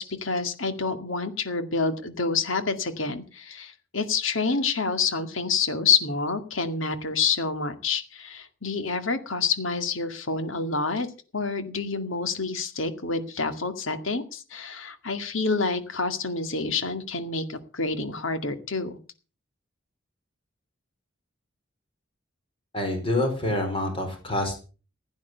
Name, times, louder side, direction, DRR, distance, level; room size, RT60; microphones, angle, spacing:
voice 1, 0.0-11.1 11.3-19.0, left 4 dB, 80° left, 9 dB, 2.1 m, -28 dB
voice 2, 22.7-24.6, left 1 dB, 30° left, 3 dB, 4.7 m, -27 dB
16.0 x 9.6 x 6.8 m, 0.37 s
head